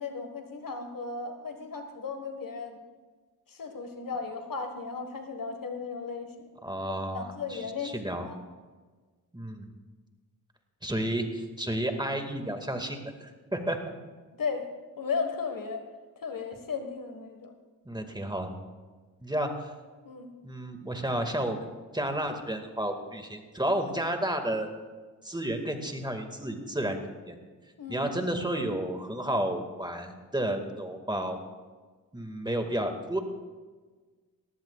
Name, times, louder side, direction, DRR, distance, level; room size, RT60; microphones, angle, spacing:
voice 1, 0.0-2.8 3.5-6.5 7.1-8.4 14.3-14.7 15.0-15.8 16.2-17.5 20.0-20.3 27.8-28.1, left 5 dB, 60° left, 6 dB, 1.6 m, -35 dB
voice 2, 6.6-8.3 9.3-9.7 10.8-13.8 17.9-18.5 19.2-19.7 20.4-21.7 21.9-24.7 25.2-27.0 27.3-27.4 27.9-31.4 32.1-33.2, right 1 dB, 10° right, 5 dB, 2.0 m, -31 dB
17.5 x 15.5 x 2.4 m, 1.4 s
cardioid pair, 50°, 38 cm